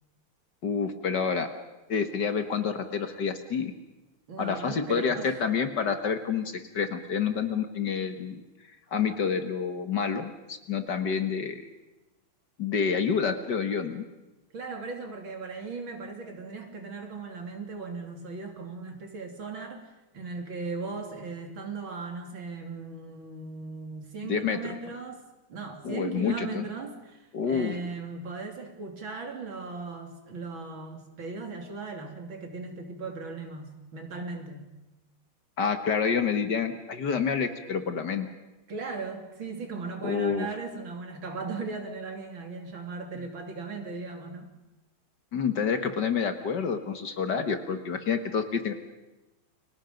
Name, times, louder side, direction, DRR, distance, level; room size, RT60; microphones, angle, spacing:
voice 1, 0.6-1.5 1.9-3.7 4.4-8.4 8.9-11.6 12.6-14.1 24.2-24.7 25.8-26.6 27.3-27.7 35.6-38.3 40.0-40.5 45.3-48.7, left 6 dB, 55° left, 8 dB, 1.9 m, -28 dB
voice 2, 4.3-5.4 14.5-25.2 25.5-34.7 38.7-44.5, right 4 dB, 60° right, 3 dB, 3.6 m, -38 dB
30.0 x 24.0 x 5.2 m, 1.0 s
omnidirectional pair, 2.4 m